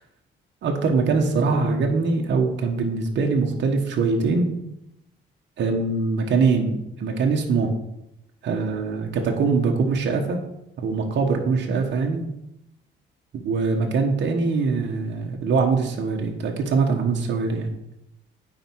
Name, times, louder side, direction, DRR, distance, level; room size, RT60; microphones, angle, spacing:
voice 1, 0.6-4.5 5.6-7.7 8.4-10.4 10.8-12.3 13.3-17.7, right 4 dB, 65° right, 2 dB, 1.3 m, -23 dB
9.0 x 5.0 x 4.7 m, 0.85 s
cardioid pair, 90°, 20 cm